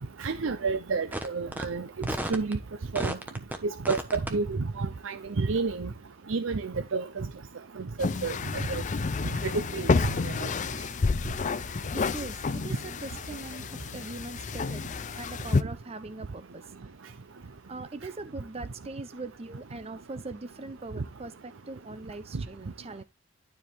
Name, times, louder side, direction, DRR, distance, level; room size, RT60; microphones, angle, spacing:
voice 1, 0.2-1.9 2.3-2.6 2.9-3.2 3.9-5.9 6.3-7.3 8.0-8.4 8.7-8.8 9.4-10.0 10.2-10.5, right 4 dB, 70° right, 0.6 m, -30 dB
sound 1, 1.1-1.3 1.5-1.6 2.0-2.5 2.9-3.6 3.8-4.3, right 1 dB, 10° right, 1.2 m, -32 dB
sound 2, 8.0-15.6, left 4 dB, 40° left, 0.4 m, -30 dB
voice 2, 11.9-14.8 15.2-16.6 17.7-23.0, right 3 dB, 30° right, 0.7 m, -41 dB
12.0 x 4.8 x 3.4 m
head